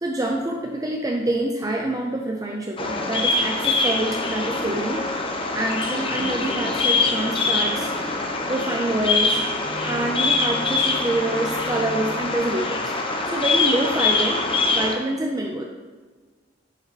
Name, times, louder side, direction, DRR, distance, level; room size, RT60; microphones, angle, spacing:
voice 1, 0.0-5.0 5.5-7.9 8.5-9.4 9.8-12.9 13.3-14.4 14.7-15.7, right 1 dB, 20° right, 1 dB, 0.5 m, -26 dB
Bird vocalization bird call bird song, 2.8-14.9, left 3 dB, 30° left, 0.8 m, -24 dB
sound 1, 6.2-12.3, right 1 dB, 5° left, 1.2 m, -39 dB
8.8 x 6.8 x 3.0 m, 1.4 s
head